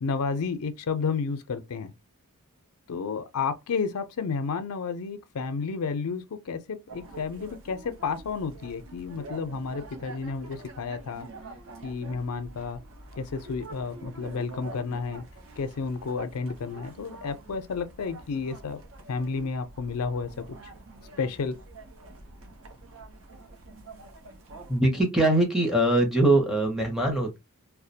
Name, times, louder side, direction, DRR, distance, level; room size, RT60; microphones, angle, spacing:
voice 1, 0.0-1.9 2.9-11.3 11.8-12.8 13.2-15.2 15.6-18.8 19.1-20.4 21.2-21.6, left 5 dB, 75° left, 0.5 m, -31 dB
sound 1, 6.9-24.8, right 2 dB, 65° right, 0.6 m, -46 dB
voice 2, 24.7-27.4, right 1 dB, ahead, 0.6 m, -22 dB
2.3 x 2.1 x 2.7 m
head